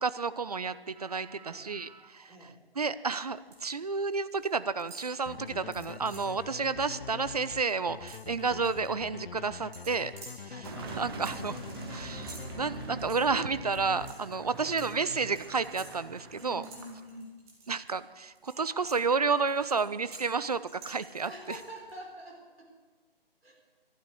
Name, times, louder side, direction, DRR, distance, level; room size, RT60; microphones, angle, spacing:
voice 1, 0.0-2.3 2.8-10.1 11.0-11.6 11.9-16.6 17.7-21.3, right 4 dB, 40° right, 15 dB, 0.4 m, -31 dB
voice 2, 2.3-2.6 10.5-10.7 14.6-14.8 16.4-17.4 21.2-22.8 23.4-23.5, equal, 75° right, 0 dB, 4.6 m, -46 dB
sound 1, 3.1-3.7 4.0-4.5 4.8-6.4 6.8-7.0 7.3-8.9 9.7-17.9 18.3-21.9, right 3 dB, 10° right, 1.3 m, -52 dB
sound 2, 5.3-14.6, left 6 dB, 65° left, 0.5 m, -44 dB
Car passing by / Engine, 10.6-17.2, right 4 dB, 25° right, 1.2 m, -43 dB
19.0 x 11.5 x 4.7 m, 1.4 s
figure-of-eight pair, 145°, 30 cm